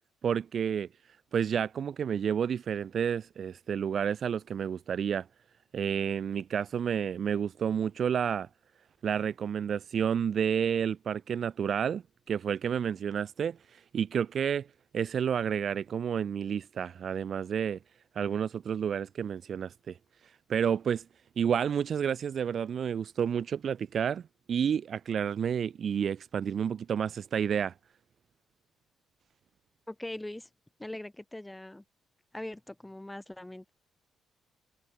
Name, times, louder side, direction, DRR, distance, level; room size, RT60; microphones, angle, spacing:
voice 1, 0.2-0.9 1.3-5.2 5.7-8.5 9.0-13.6 13.9-14.7 14.9-17.8 18.1-19.9 20.5-21.0 21.4-24.2 24.5-27.7, right 8 dB, 55° right, 3.2 m, -30 dB
voice 2, 29.9-30.5 30.8-31.8 32.3-33.7, left 1 dB, 10° left, 4.9 m, -41 dB
cardioid pair, 90°, 0 cm